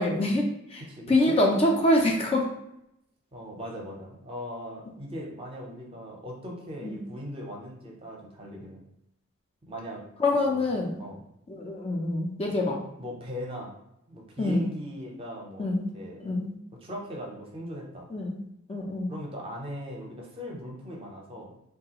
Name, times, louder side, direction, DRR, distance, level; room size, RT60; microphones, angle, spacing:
voice 1, 0.0-0.8 1.1-2.4 6.8-6.9 10.2-11.0 11.5-12.8 14.4-14.6 15.6-15.9 16.2-16.5 18.1-18.4 18.7-19.1, left 1 dB, 30° left, 0 dB, 0.4 m, -25 dB
voice 2, 0.9-1.4 3.3-8.8 9.7-10.0 10.3-10.7 11.0-11.2 12.5-12.6 13.0-13.7 14.1-15.7 15.9-16.2 16.8-18.1 19.1-21.5, equal, 25° right, -1 dB, 0.6 m, -39 dB
3.3 x 2.3 x 2.8 m, 0.80 s
head